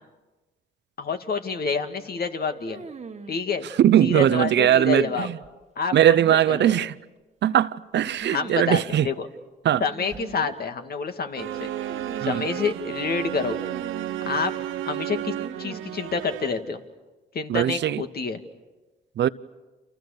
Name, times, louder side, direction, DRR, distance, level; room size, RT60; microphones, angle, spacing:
voice 1, 1.0-2.8 3.3-3.7 4.0-5.3 5.8-6.2 6.5-6.7 8.3-9.3 9.8-11.9 12.2-13.6 14.2-14.5 14.8-16.8 17.3-18.4, left 5 dB, 50° left, 2.2 m, -28 dB
sound 1, 2.7-3.4 4.7-5.5 6.2-6.9 8.2-8.6 8.9-9.0 9.9-10.6 11.7-12.5 13.5-14.3 15.3-16.0, right 5 dB, 35° right, 1.5 m, -41 dB
voice 2, 3.6-5.4 5.9-6.9 7.4-9.1 9.6-9.8 12.2-12.4 17.5-18.0 19.2-19.3, right 11 dB, 60° right, 0.8 m, -20 dB
sound 2, 11.4-16.8, right 12 dB, 85° right, 1.0 m, -32 dB
29.5 x 28.0 x 6.7 m
cardioid pair, 90°, 20 cm